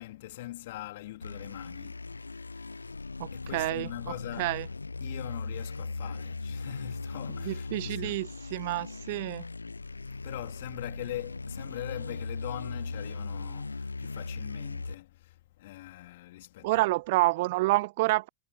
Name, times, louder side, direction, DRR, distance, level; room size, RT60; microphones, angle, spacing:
voice 1, 0.0-4.6 4.9-8.3 10.1-16.9, left 16 dB, 55° left, 3.0 m, -43 dB
sound 1, 1.2-14.9, left 3 dB, 80° left, 1.0 m, -38 dB
voice 2, 3.2-3.9 4.4-4.7 7.4-9.4 16.6-18.3, right 20 dB, 50° right, 0.5 m, -28 dB
figure-of-eight pair, 90°, 0 cm